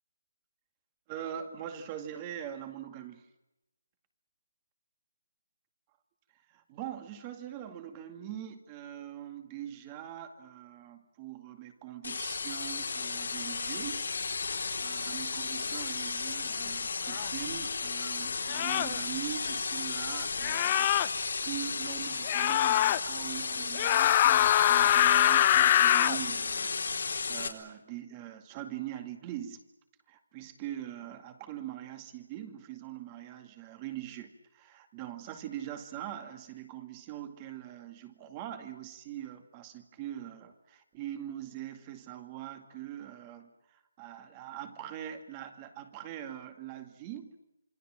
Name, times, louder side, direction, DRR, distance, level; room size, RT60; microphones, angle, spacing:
voice 1, 1.1-3.2 6.5-14.1 14.4-29.6 30.1-47.4, right 11 dB, 20° right, 8 dB, 2.2 m, -42 dB
sound 1, 12.0-27.5, left 4 dB, 70° left, 4.1 m, -34 dB
sound 2, 17.1-17.3 18.5-19.0 20.4-21.1 22.3-23.0 23.7-26.2, left 12 dB, 25° left, 0.9 m, -24 dB
27.0 x 24.5 x 7.7 m, 0.95 s
hypercardioid pair, 165°, 0 cm